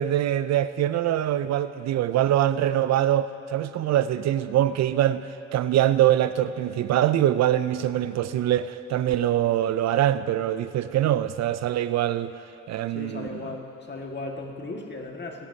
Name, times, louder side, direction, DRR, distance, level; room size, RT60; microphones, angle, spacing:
voice 1, 0.0-5.2 5.5-12.3 12.7-13.3, right 12 dB, 60° right, 13 dB, 0.4 m, -23 dB
voice 2, 12.9-15.5, left 2 dB, 35° left, 0 dB, 1.8 m, -36 dB
25.0 x 11.0 x 2.8 m, 2.8 s
cardioid pair, 90°, 30 cm